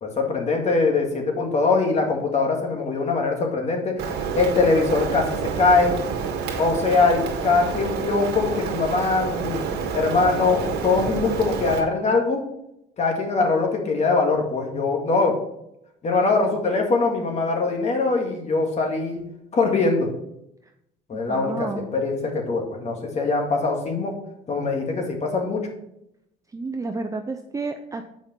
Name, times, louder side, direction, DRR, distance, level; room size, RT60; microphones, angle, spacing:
voice 1, 0.0-5.9 6.6-9.6 9.9-12.4 13.0-15.4 16.0-19.2 19.5-20.1 21.1-24.1 24.5-25.7, left 3 dB, 40° left, 2 dB, 2.1 m, -22 dB
Rain, 4.0-11.8, right 6 dB, 80° right, 1.7 m, -28 dB
voice 2, 21.3-21.9 26.5-28.1, right 3 dB, 20° right, 5 dB, 0.5 m, -31 dB
7.8 x 5.1 x 4.5 m, 0.80 s
cardioid pair, 110°, 17 cm